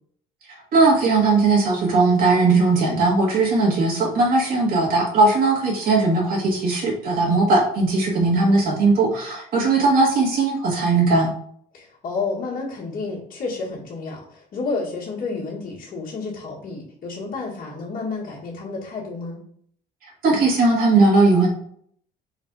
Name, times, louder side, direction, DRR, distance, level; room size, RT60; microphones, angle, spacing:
voice 1, 0.7-11.3 20.2-21.5, right 3 dB, 60° right, -2 dB, 1.3 m, -18 dB
voice 2, 11.7-19.4, left 4 dB, 55° left, -7 dB, 1.7 m, -30 dB
3.9 x 2.5 x 4.6 m, 0.64 s
cardioid pair, 110°, 17 cm